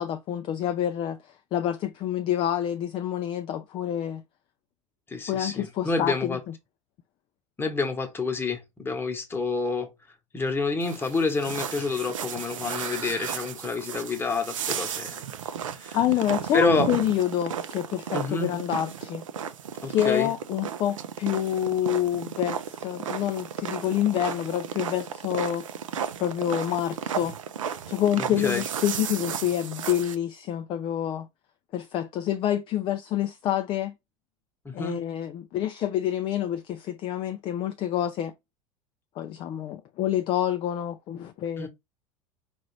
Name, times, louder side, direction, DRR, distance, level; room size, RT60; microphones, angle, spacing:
voice 1, 0.0-4.2 5.3-6.5 15.9-19.2 19.9-25.7 26.2-27.4 27.9-31.3 31.7-33.9 34.7-38.3 39.2-41.7, left 11 dB, 30° left, 0.4 m, -27 dB
voice 2, 5.1-6.4 7.6-9.9 10.3-15.2 15.8-16.0 16.5-16.9 18.1-18.5 19.8-20.3 28.2-28.6 34.6-35.0 41.6-41.7, left 3 dB, 15° left, 1.1 m, -28 dB
sound 1, 10.8-30.1, right 8 dB, 70° right, 0.5 m, -34 dB
4.8 x 2.5 x 3.1 m
figure-of-eight pair, 80°, 17 cm